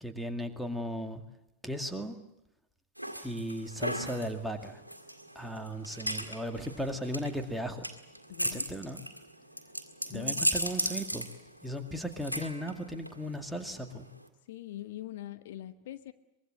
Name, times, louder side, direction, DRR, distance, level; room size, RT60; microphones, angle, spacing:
voice 1, 0.0-1.2 1.6-2.2 3.1-4.8 5.4-7.9 8.5-9.0 10.1-11.3 11.6-14.1, equal, ahead, 5 dB, 2.1 m, -36 dB
sound 1, 3.0-14.3, equal, 90° right, 1.9 m, -36 dB
voice 2, 8.3-8.7 10.1-10.4 14.5-16.1, left 13 dB, 55° left, 11 dB, 1.0 m, -42 dB
24.0 x 22.0 x 7.7 m, 0.90 s
figure-of-eight pair, 90°, 0 cm